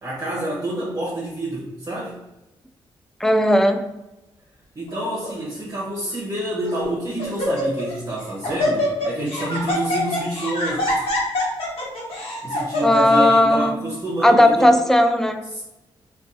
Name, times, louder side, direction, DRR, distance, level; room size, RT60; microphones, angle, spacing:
voice 1, 0.0-2.2 4.7-11.1 12.4-14.8 15.5-15.6, right 1 dB, 35° right, -5 dB, 0.8 m, -28 dB
voice 2, 3.2-3.9 12.8-13.8 14.2-15.4, left 1 dB, 5° left, 7 dB, 0.3 m, -16 dB
Laughter, 4.9-5.3 6.0-6.1 6.6-6.9 7.2-13.2, left 1 dB, 90° left, 1.0 m, -25 dB
2.6 x 2.3 x 3.7 m, 0.99 s
cardioid pair, 75°, 10 cm